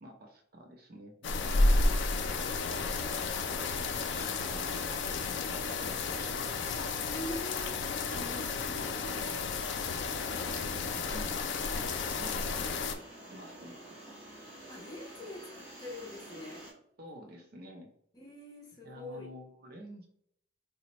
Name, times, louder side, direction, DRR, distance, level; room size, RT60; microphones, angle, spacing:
voice 1, 0.0-3.2 3.5-3.7 4.1-5.2 5.8-6.6 8.1-9.4 9.9-11.4 12.2-12.7 13.3-14.0 17.0-17.9 18.8-20.1, equal, 50° right, 2 dB, 0.6 m, -49 dB
sound 1, 1.2-13.0, left 3 dB, 60° left, 0.4 m, -32 dB
voice 2, 7.1-7.7 14.7-16.7 18.1-19.3, left 1 dB, 20° left, -1 dB, 0.6 m, -43 dB
sound 2, 11.1-16.7, right 1 dB, 5° right, 1.3 m, -49 dB
4.1 x 2.1 x 2.9 m, 0.68 s
head